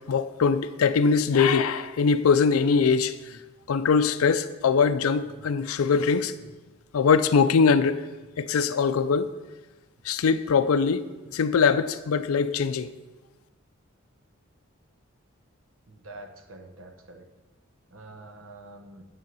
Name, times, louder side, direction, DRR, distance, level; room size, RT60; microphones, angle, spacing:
voice 1, 0.1-3.4 3.7-6.3 6.9-8.0 8.4-9.3 10.0-11.0 11.3-12.9, left 5 dB, 90° left, 0.4 m, -22 dB
voice 2, 15.9-17.3 17.9-19.0, right 2 dB, 65° right, 1.1 m, -46 dB
9.3 x 7.5 x 5.5 m
head